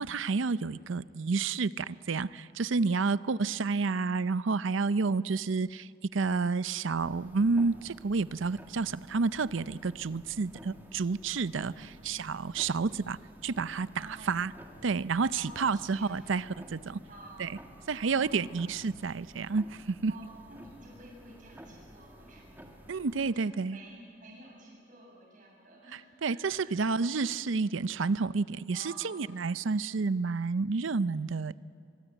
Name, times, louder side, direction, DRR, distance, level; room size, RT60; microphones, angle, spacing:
voice 1, 0.0-13.9 14.3-14.5 14.8-17.0 17.4-17.5 17.9-20.1 22.9-23.8 26.2-31.6, right 4 dB, 70° right, 17 dB, 0.6 m, -30 dB
sound 1, 7.0-23.3, equal, 10° right, 1.9 m, -53 dB
voice 2, 13.9-14.4 15.3-16.3 17.1-17.5 17.9-18.7 20.1-27.2 28.7-29.3, right 1 dB, 40° right, -2 dB, 7.7 m, -51 dB
23.5 x 23.0 x 9.1 m, 2.5 s
head